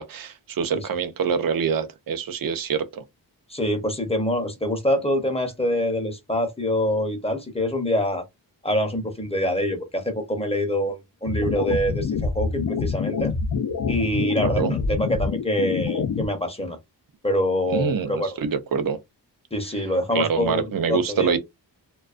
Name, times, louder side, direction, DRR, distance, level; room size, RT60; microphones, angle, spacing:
voice 1, 0.0-3.0 14.4-14.7 17.7-19.0 20.1-21.4, right 6 dB, 50° right, 0.6 m, -25 dB
voice 2, 3.5-8.2 8.6-13.3 13.9-16.8 17.2-18.4 19.5-21.4, left 1 dB, 15° left, 0.7 m, -25 dB
sound 1, 11.3-16.3, left 5 dB, 55° left, 0.5 m, -26 dB
2.3 x 2.2 x 2.4 m
wide cardioid pair, 65°, 44 cm